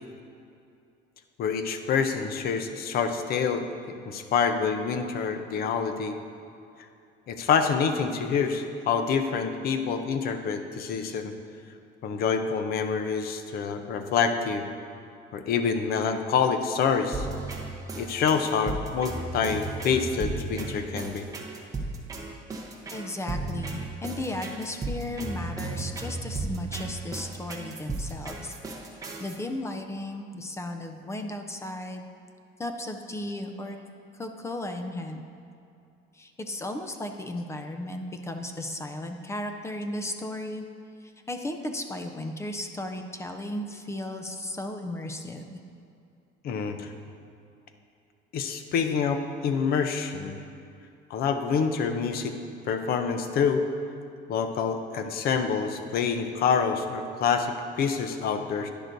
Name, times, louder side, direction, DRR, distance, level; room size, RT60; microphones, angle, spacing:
voice 1, 1.4-3.6 4.1-6.2 7.3-11.3 12.0-14.7 15.3-17.3 18.0-21.3 46.4-46.9 48.3-50.4 51.1-52.3 52.7-53.6 54.3-58.7, left 6 dB, 50° left, 7 dB, 0.6 m, -27 dB
sound 1, 17.1-29.4, right 3 dB, 15° right, 0.8 m, -34 dB
voice 2, 22.9-28.5 29.2-32.1 32.6-33.8 34.2-35.2 36.1-40.7 41.0-45.6, left 1 dB, 15° left, 5 dB, 0.4 m, -35 dB
10.5 x 10.5 x 2.6 m, 2.6 s
cardioid pair, 165°, 20 cm